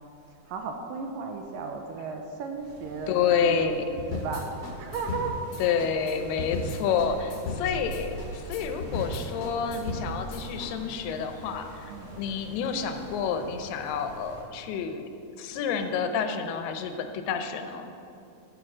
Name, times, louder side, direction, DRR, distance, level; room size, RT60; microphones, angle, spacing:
voice 1, 0.0-5.4 11.9-12.1, right 4 dB, 80° right, 4 dB, 2.1 m, -35 dB
sound 1, 2.6-14.4, right 1 dB, 50° right, 1.8 m, -44 dB
voice 2, 3.1-3.8 5.6-11.9 12.1-15.1 15.4-17.9, left 6 dB, 85° left, 7 dB, 2.7 m, -29 dB
sound 2, 4.0-10.7, left 3 dB, 60° left, 1.7 m, -36 dB
13.0 x 6.8 x 6.1 m, 2.6 s
omnidirectional pair, 4.5 m